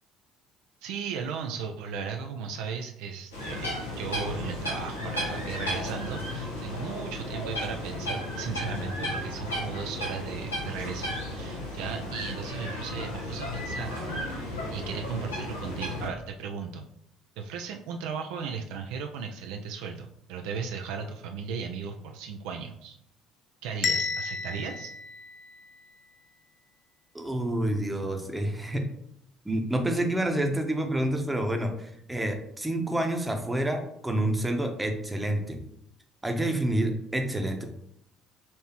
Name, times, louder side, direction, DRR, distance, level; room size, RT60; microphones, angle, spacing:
voice 1, 0.8-14.3 14.7-16.8 17.4-23.0 23.6-24.9, right 6 dB, 65° right, 3 dB, 0.4 m, -36 dB
sound 1, 3.3-16.1, left 1 dB, 85° left, 1.1 m, -34 dB
Bell, 23.8-25.9, left 5 dB, 40° left, 0.4 m, -32 dB
voice 2, 27.1-28.8 29.4-35.6 36.2-37.6, right 1 dB, 10° right, 4 dB, 0.9 m, -28 dB
5.7 x 3.2 x 2.9 m, 0.73 s
figure-of-eight pair, 55°, 0 cm